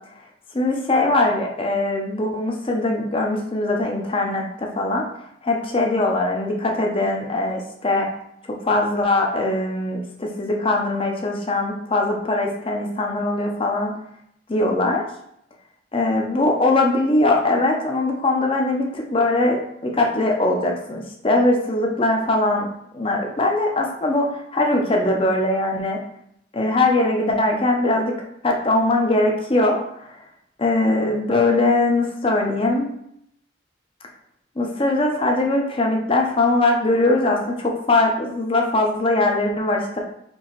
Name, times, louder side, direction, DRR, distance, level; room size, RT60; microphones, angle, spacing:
voice 1, 0.5-5.0 5.4-8.1 8.5-13.9 14.5-15.1 15.9-22.7 22.9-26.0 26.5-28.1 28.4-30.1 30.6-32.9 34.6-40.0, left 2 dB, 25° left, 1 dB, 0.6 m, -21 dB
4.5 x 2.9 x 2.9 m, 0.73 s
head